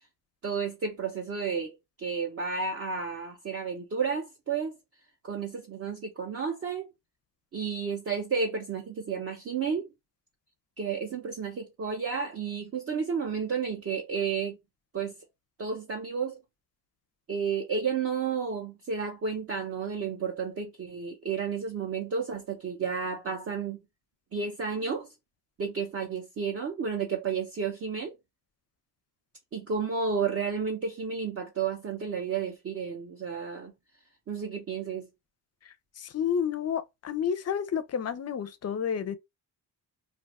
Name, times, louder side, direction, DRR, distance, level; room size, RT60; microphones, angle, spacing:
voice 1, 0.4-4.8 5.2-6.9 7.5-9.9 10.8-14.6 14.9-15.1 15.6-16.4 17.3-23.8 24.3-25.1 25.6-28.1 29.5-33.7 34.3-35.1, right 5 dB, 35° right, 0.5 m, -32 dB
voice 2, 36.0-39.2, left 8 dB, 40° left, 0.4 m, -30 dB
2.5 x 2.2 x 4.0 m
wide cardioid pair, 145°, 42 cm